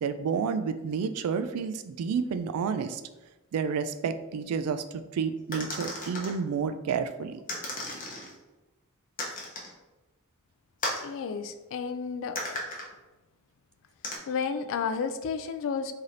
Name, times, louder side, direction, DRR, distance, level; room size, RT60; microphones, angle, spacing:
voice 1, 0.0-3.0 3.5-7.4, right 6 dB, 70° right, 10 dB, 0.3 m, -30 dB
sound 1, 5.5-6.3 7.5-8.3 9.2-9.7 10.8-11.1 12.4-12.9 14.0-14.2, left 1 dB, 40° left, 0.8 m, -34 dB
voice 2, 10.9-12.6 14.3-15.9, left 6 dB, 60° left, 9 dB, 0.3 m, -32 dB
3.2 x 2.8 x 3.7 m, 1.1 s
head